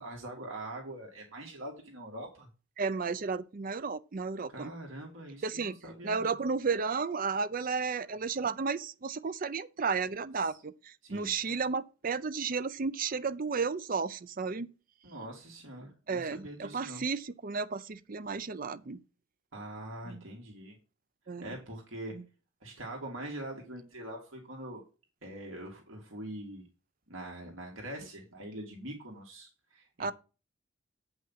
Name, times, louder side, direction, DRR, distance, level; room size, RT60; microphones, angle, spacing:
voice 1, 0.0-2.5 4.5-6.3 10.5-10.6 11.0-11.3 15.0-17.0 19.5-20.8 21.4-22.1 22.6-24.8 25.2-26.7 27.1-30.1, right 1 dB, 75° right, 2.4 m, -43 dB
voice 2, 2.8-4.7 5.4-5.8 6.0-14.7 16.1-19.0 20.1-20.2 21.3-21.5 22.1-22.2 30.0-30.1, right 5 dB, 45° right, 0.5 m, -33 dB
8.9 x 5.6 x 5.7 m
head